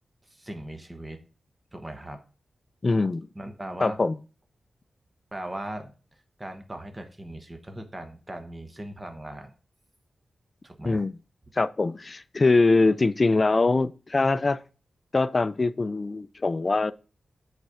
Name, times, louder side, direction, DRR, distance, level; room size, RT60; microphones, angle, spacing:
voice 1, 0.3-1.2 1.7-2.2 3.3-4.0 5.3-5.9 6.4-9.5 10.6-11.0, right 1 dB, 20° right, 1.1 m, -38 dB
voice 2, 2.8-3.3 3.8-4.2 10.8-11.2 11.5-14.6 15.1-16.9, left 3 dB, 35° left, 0.4 m, -23 dB
8.0 x 4.2 x 4.8 m
wide cardioid pair, 100°, 0 cm